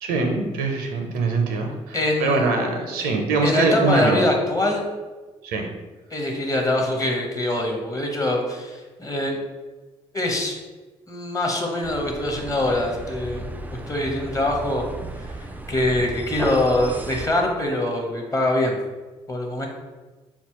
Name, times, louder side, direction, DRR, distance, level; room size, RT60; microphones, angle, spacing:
voice 1, 0.0-2.0 2.2-4.3 5.4-5.7, right 3 dB, 75° right, 3 dB, 0.5 m, -23 dB
voice 2, 1.9-2.5 3.0-3.1 3.4-4.8 6.1-9.4 10.1-10.5 11.1-14.9 15.2-18.8 19.3-19.7, left 1 dB, 20° left, 1 dB, 0.9 m, -24 dB
sound 1, 11.8-17.3, right 2 dB, 10° right, 0.3 m, -34 dB
4.1 x 2.3 x 2.9 m, 1.2 s
hypercardioid pair, 50°, 16 cm